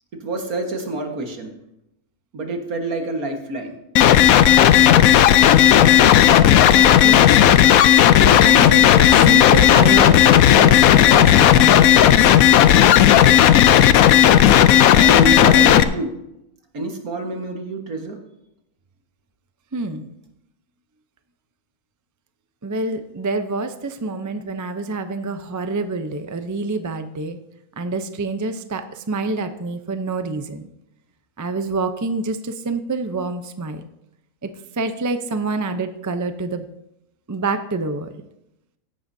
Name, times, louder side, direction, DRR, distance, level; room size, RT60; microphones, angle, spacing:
voice 1, 0.2-1.5 2.3-3.8 14.9-16.1 16.7-18.2, right 2 dB, 75° right, 3 dB, 2.0 m, -27 dB
sound 1, 4.0-15.8, left 11 dB, 75° left, 1.0 m, -12 dB
voice 2, 6.1-7.6 8.2-12.0 19.7-20.1 22.6-27.4 27.8-30.7 31.4-33.8 34.4-34.5 34.7-36.7 37.3-38.1, right 3 dB, 25° right, 8 dB, 0.3 m, -27 dB
15.5 x 11.5 x 2.7 m, 0.85 s
omnidirectional pair, 1.5 m